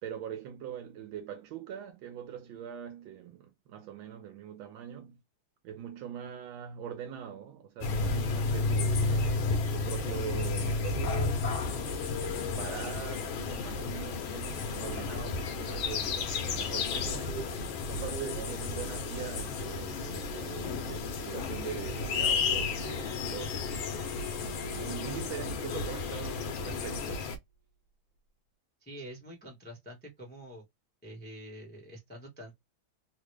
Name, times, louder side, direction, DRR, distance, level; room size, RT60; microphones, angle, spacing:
voice 1, 0.0-5.2 5.6-11.4 12.1-17.4 17.9-23.9 24.4-27.3, right 9 dB, 85° right, 1.5 m, -42 dB
sound 1, 7.8-27.4, left 4 dB, 85° left, 1.6 m, -32 dB
sound 2, 17.1-26.2 26.5-26.9 27.1-27.2, right 6 dB, 65° right, 1.4 m, -48 dB
Bowed string instrument, 22.5-27.3, left 7 dB, 65° left, 1.7 m, -47 dB
voice 2, 28.8-30.6 31.0-32.5, equal, 10° left, 0.7 m, -46 dB
3.8 x 2.1 x 3.2 m
omnidirectional pair, 2.2 m